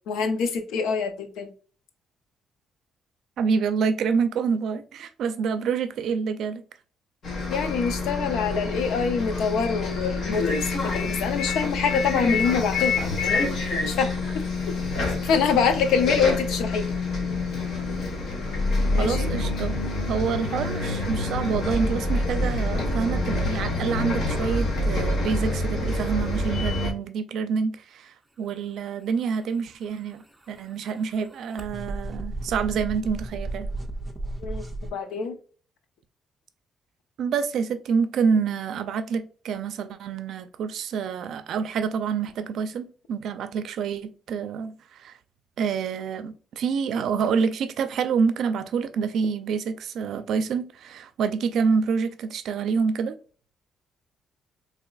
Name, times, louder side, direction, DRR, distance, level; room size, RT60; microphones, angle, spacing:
voice 1, 0.1-1.5 7.5-14.4 15.2-16.9 18.9-19.3 34.4-34.6 34.9-35.4, left 6 dB, 90° left, 0.7 m, -25 dB
voice 2, 3.4-6.6 19.0-19.8 20.1-33.7 37.2-45.1 45.6-53.2, right 6 dB, 65° right, 0.4 m, -27 dB
Bus, 7.2-26.9, left 2 dB, 55° left, 1.2 m, -27 dB
sound 1, 29.7-34.9, right 2 dB, 5° right, 0.5 m, -34 dB
3.9 x 2.8 x 2.3 m
cardioid pair, 145°, 0 cm